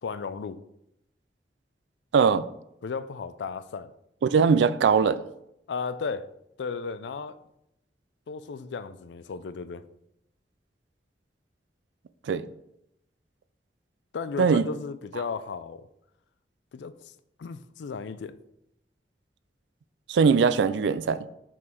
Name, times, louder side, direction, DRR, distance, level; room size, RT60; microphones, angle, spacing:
voice 1, 0.0-0.6 2.8-3.9 5.7-6.3 6.6-7.4 8.3-9.8 14.1-15.9 16.7-17.1 17.4-18.4, left 5 dB, 80° left, 0.4 m, -35 dB
voice 2, 2.1-2.4 4.2-5.2 12.3-12.4 14.4-14.7 20.1-21.2, right 5 dB, 85° right, 0.4 m, -21 dB
6.1 x 3.9 x 4.4 m
head